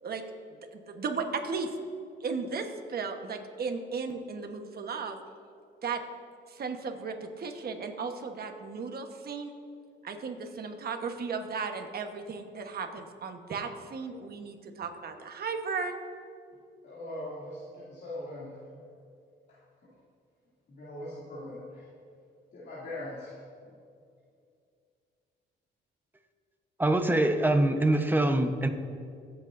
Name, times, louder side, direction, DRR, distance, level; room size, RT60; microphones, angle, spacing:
voice 1, 0.5-1.7 2.2-5.2 5.8-6.0 6.5-9.5 10.0-15.9, right 5 dB, 50° right, 5 dB, 1.2 m, -35 dB
voice 2, 16.8-18.8 19.5-19.9 20.7-21.9 22.5-23.4 23.7-23.8, left 1 dB, 60° left, -9 dB, 2.7 m, -41 dB
voice 3, 26.8-28.7, right 1 dB, 10° right, 6 dB, 1.0 m, -24 dB
24.0 x 8.2 x 2.6 m, 2.3 s
cardioid pair, 90°, 20 cm